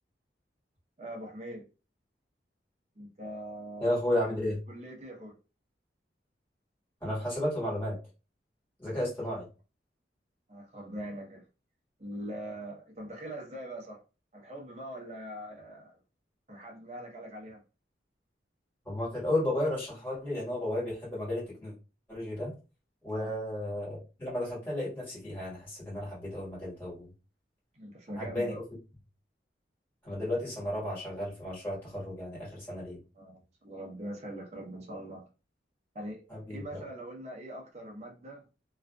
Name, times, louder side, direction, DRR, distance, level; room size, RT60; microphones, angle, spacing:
voice 1, 1.0-1.6 3.0-3.9 4.7-5.3 10.5-11.4 12.0-14.0 14.3-16.0 16.5-17.6 23.1-23.3 27.7-28.6 33.1-35.3 35.9-36.2 36.5-38.4, right 1 dB, 35° right, 0.7 m, -42 dB
voice 2, 3.8-4.6 7.0-8.0 8.8-9.4 18.8-21.7 22.1-22.5 23.0-27.1 28.2-28.6 30.0-33.0 36.3-36.8, left 1 dB, 10° left, 1.4 m, -33 dB
2.4 x 2.4 x 2.2 m
head